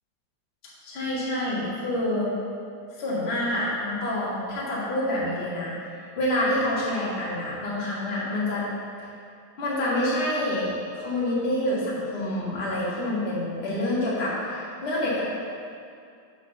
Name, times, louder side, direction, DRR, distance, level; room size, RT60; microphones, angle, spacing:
voice 1, 0.8-2.3 3.0-5.7 6.1-8.7 9.6-10.7 10.9-15.2, left 1 dB, 30° left, -7 dB, 1.1 m, -27 dB
6.3 x 4.2 x 6.4 m, 2.3 s
omnidirectional pair, 3.5 m